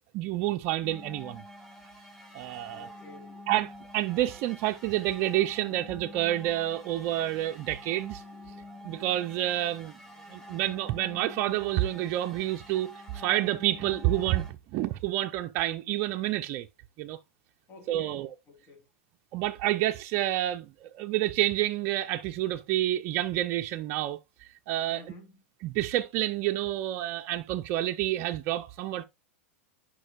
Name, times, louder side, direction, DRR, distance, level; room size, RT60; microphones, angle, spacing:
voice 1, 0.1-1.4 2.3-2.9 3.5-8.2 8.8-9.9 10.3-16.7 17.0-17.2 17.9-18.3 19.3-24.2 24.7-25.0 25.6-29.0, right 14 dB, 45° right, 0.5 m, -29 dB
sound 1, 0.8-14.5, left 1 dB, 5° left, 1.9 m, -47 dB
voice 2, 2.7-3.3 17.7-18.2 18.5-18.8 24.9-25.4, left 2 dB, 35° left, 3.1 m, -50 dB
9.8 x 5.2 x 2.3 m
hypercardioid pair, 115°, 7 cm